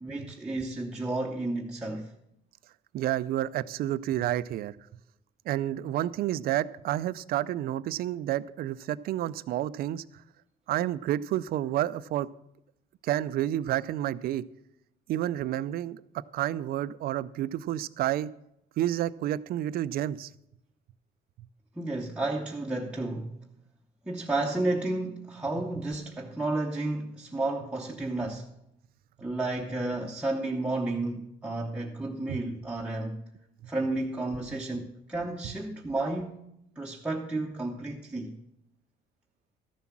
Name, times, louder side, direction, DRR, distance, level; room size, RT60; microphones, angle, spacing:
voice 1, 0.0-2.1 21.8-23.4 24.1-28.5 29.2-33.2 33.7-36.4 36.8-38.3, right 2 dB, 5° right, 0.8 m, -32 dB
voice 2, 2.9-4.7 5.5-10.0 10.7-12.3 13.0-14.4 15.1-18.3 18.8-20.3 32.3-32.4, right 13 dB, 65° right, 0.4 m, -30 dB
13.0 x 7.1 x 6.0 m
cardioid pair, 110°, 17 cm